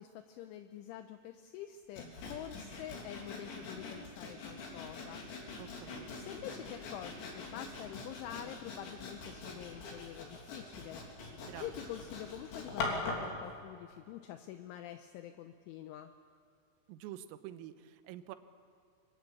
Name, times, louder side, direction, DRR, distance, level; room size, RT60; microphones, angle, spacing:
voice 1, 0.0-5.2 6.2-11.3 11.6-16.1, left 11 dB, 80° left, 8 dB, 3.1 m, -47 dB
Sawing, 1.9-13.3, left 3 dB, 60° left, 5.4 m, -43 dB
voice 2, 5.6-6.1 11.5-11.7 16.9-18.4, right 12 dB, 90° right, 11 dB, 3.7 m, -47 dB
24.5 x 23.5 x 8.6 m, 2.4 s
omnidirectional pair, 5.9 m